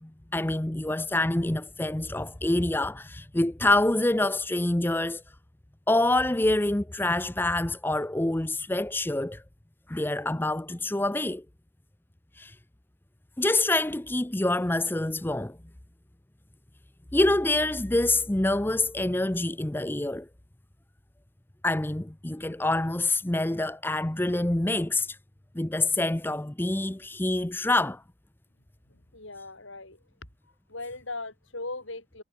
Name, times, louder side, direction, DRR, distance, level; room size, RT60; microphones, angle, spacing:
voice 1, 0.0-5.2 5.9-9.4 9.9-11.4 12.4-12.5 13.4-15.6 17.1-20.3 21.6-25.2 25.6-28.0, left 2 dB, 10° left, 0.5 m, -26 dB
voice 2, 28.9-30.0 30.7-32.2, left 2 dB, 70° left, 7.5 m, -39 dB
head